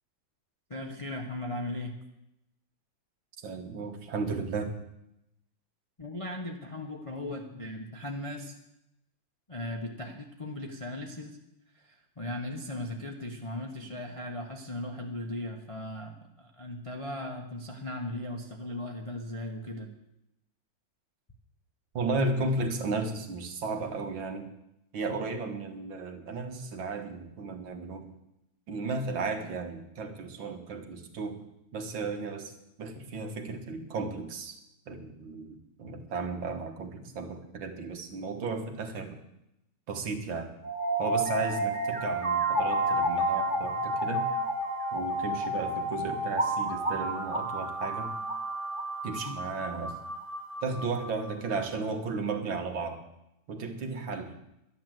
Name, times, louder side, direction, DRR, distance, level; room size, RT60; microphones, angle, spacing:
voice 1, 0.7-2.0 6.0-8.6 9.5-11.4 11.7-19.9 49.2-49.4, left 1 dB, 25° left, 1 dB, 0.9 m, -38 dB
voice 2, 3.4-4.7 21.9-24.5 24.9-28.0 28.7-31.4 31.7-32.5 32.8-34.6 34.9-39.2 39.9-40.5 41.0-44.3 44.9-48.2 49.0-50.0 50.6-53.0 53.5-54.4, right 3 dB, 85° right, 5 dB, 2.2 m, -34 dB
sound 1, 40.6-51.6, right 1 dB, 25° right, 1.8 m, -31 dB
12.0 x 10.0 x 7.7 m, 0.85 s
omnidirectional pair, 2.1 m